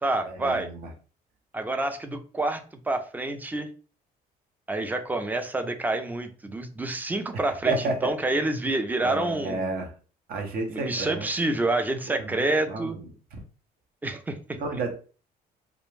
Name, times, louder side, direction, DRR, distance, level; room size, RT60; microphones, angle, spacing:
voice 1, 0.0-0.7 1.5-3.7 4.7-9.7 10.7-13.0 14.0-14.8, right 2 dB, 10° right, 7 dB, 0.4 m, -28 dB
voice 2, 7.7-8.1 9.0-9.9 10.3-11.3 12.2-12.9 14.6-14.9, right 3 dB, 60° right, 3 dB, 0.7 m, -30 dB
2.4 x 2.1 x 3.1 m, 0.38 s
cardioid pair, 110°, 17 cm